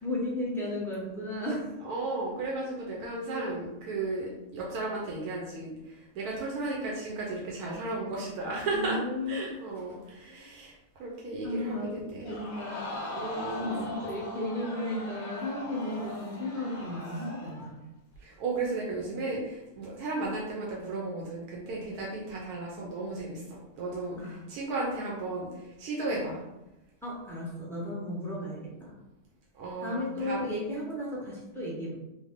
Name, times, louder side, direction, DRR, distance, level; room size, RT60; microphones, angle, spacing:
voice 1, 0.0-1.7 3.3-3.4 8.7-9.5 11.4-12.9 13.5-17.7 24.2-24.4 27.0-28.9 29.8-31.9, left 1 dB, 5° left, -7 dB, 0.5 m, -34 dB
voice 2, 1.8-9.0 9.3-12.5 13.1-14.0 18.2-26.4 29.5-30.4, right 2 dB, 90° right, -3 dB, 1.2 m, -35 dB
Crowd, 12.2-17.7 18.1-18.2, left 2 dB, 60° left, 0.8 m, -40 dB
3.2 x 2.1 x 3.5 m, 0.94 s
omnidirectional pair, 1.6 m